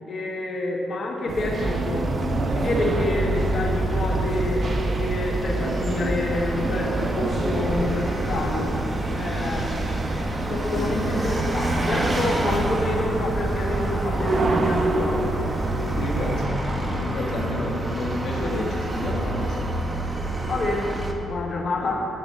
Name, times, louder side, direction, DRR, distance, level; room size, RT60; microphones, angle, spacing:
voice 1, 0.1-8.7 9.1-10.1 10.5-15.4 20.5-21.0 21.3-22.1, left 2 dB, 55° left, -1 dB, 1.5 m, -28 dB
Vehicle, 1.3-21.1, right 1 dB, 20° right, 1.2 m, -29 dB
sound 1, 1.3-16.5, right 2 dB, 45° right, 0.8 m, -28 dB
voice 2, 10.8-11.2 16.0-19.7 21.8-21.9, left 2 dB, 75° left, -2 dB, 1.4 m, -30 dB
10.5 x 5.0 x 7.0 m, 3.0 s
cardioid pair, 85°, 0 cm